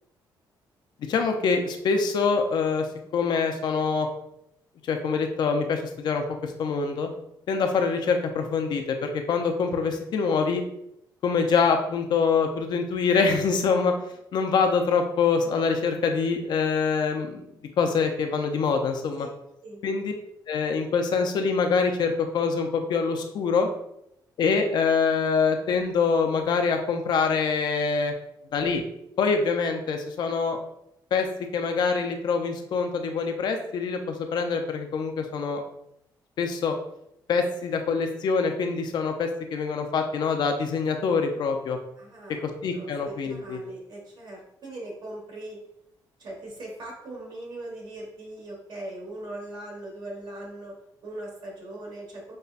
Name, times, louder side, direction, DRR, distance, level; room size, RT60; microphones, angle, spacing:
voice 1, 1.1-2.9 3.1-4.1 4.8-7.1 7.5-10.6 11.2-14.0 14.3-17.4 17.8-19.3 19.8-20.1 20.5-23.7 24.4-28.1 28.5-28.8 29.2-30.6 31.1-31.3 31.5-35.6 36.4-36.8 37.3-41.8 42.4-43.6, left 5 dB, 65° left, 5 dB, 0.5 m, -25 dB
voice 2, 42.0-42.4 42.7-45.6 46.2-52.3, right 1 dB, 65° right, -2 dB, 1.3 m, -40 dB
5.3 x 2.2 x 2.4 m, 0.78 s
cardioid pair, 135°, 8 cm